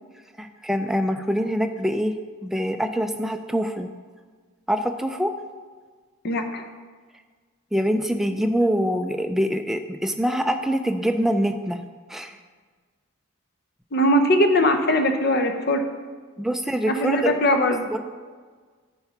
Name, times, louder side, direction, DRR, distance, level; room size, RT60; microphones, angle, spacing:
voice 1, 0.4-2.1 2.4-3.9 4.7-5.3 7.7-11.8 12.1-12.3 16.4-17.3 17.9-18.0, equal, ahead, 6 dB, 0.3 m, -24 dB
voice 2, 6.2-6.6 13.9-15.8 16.9-17.8, equal, 45° left, 6 dB, 0.7 m, -20 dB
9.4 x 4.5 x 5.8 m, 1.5 s
head